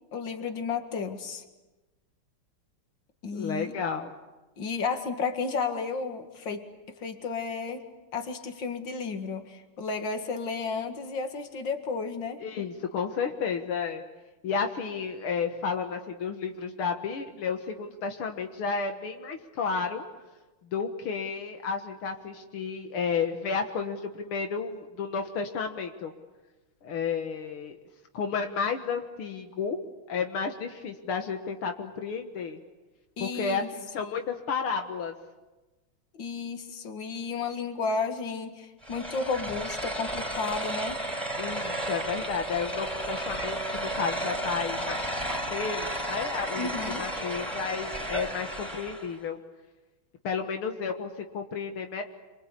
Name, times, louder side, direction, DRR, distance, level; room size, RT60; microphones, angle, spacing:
voice 1, 0.1-1.4 3.2-3.8 4.6-6.7 7.0-7.8 8.1-12.4 33.2-33.7 36.1-41.0 46.6-47.0, left 4 dB, 60° left, 6 dB, 2.7 m, -32 dB
voice 2, 3.3-4.1 12.4-14.0 14.4-20.1 20.7-26.1 26.8-27.8 28.1-29.8 30.1-32.6 33.2-35.1 41.4-45.0 45.3-46.7 47.0-49.4 50.2-52.0, left 5 dB, 80° left, 5 dB, 2.4 m, -32 dB
sound 1, 38.8-49.1, right 1 dB, ahead, 4.5 m, -33 dB
28.0 x 24.5 x 8.4 m, 1.1 s
omnidirectional pair, 2.3 m